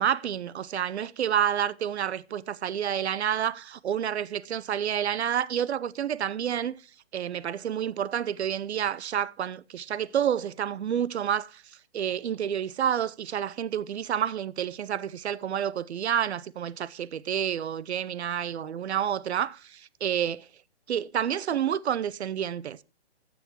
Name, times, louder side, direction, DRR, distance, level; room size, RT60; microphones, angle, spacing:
voice 1, 0.0-6.8 7.1-11.6 11.9-20.5 20.9-22.8, right 9 dB, 70° right, 0.6 m, -29 dB
13.5 x 7.1 x 3.0 m
hypercardioid pair, 160°, 34 cm